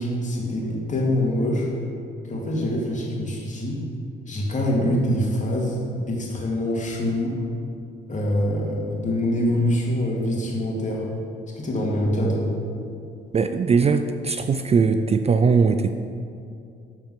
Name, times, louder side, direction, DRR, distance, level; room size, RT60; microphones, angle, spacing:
voice 1, 0.0-1.7 2.3-3.8 4.3-7.4 8.1-11.0 11.5-12.5, left 1 dB, 40° left, -3 dB, 2.4 m, -24 dB
voice 2, 13.3-15.9, right 5 dB, 30° right, 9 dB, 0.4 m, -20 dB
13.0 x 4.4 x 5.8 m, 2.5 s
cardioid pair, 90°, 20 cm